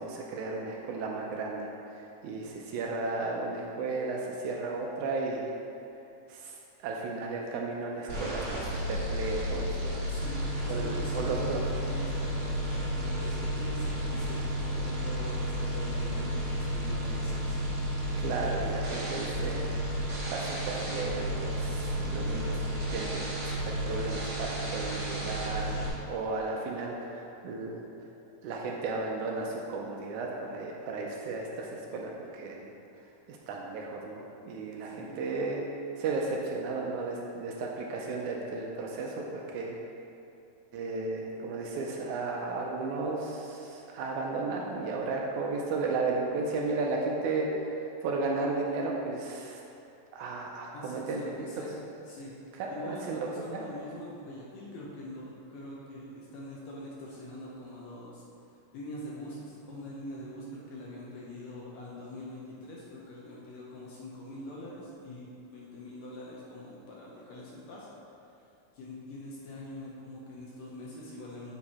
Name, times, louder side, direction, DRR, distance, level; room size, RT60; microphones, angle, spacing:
voice 1, 0.0-1.7 2.2-5.5 6.3-6.6 6.8-10.0 10.7-11.6 18.1-20.0 20.3-22.6 22.9-25.8 26.1-27.8 28.4-32.7 33.3-35.6 36.0-39.3 39.5-39.8 40.7-49.6 50.1-51.2 51.6-51.7 52.6-52.7 53.1-53.3 53.5-53.7, right 3 dB, 80° right, -1 dB, 1.9 m, -34 dB
sound 1, 8.1-25.9, equal, 50° right, 2.1 m, -32 dB
voice 2, 10.1-17.6 34.8-35.2 50.7-51.7 52.1-52.3 52.6-58.2 58.7-67.9 68.7-71.5, left 1 dB, 70° left, -5 dB, 1.8 m, -44 dB
7.6 x 4.6 x 4.2 m, 2.7 s
omnidirectional pair, 3.7 m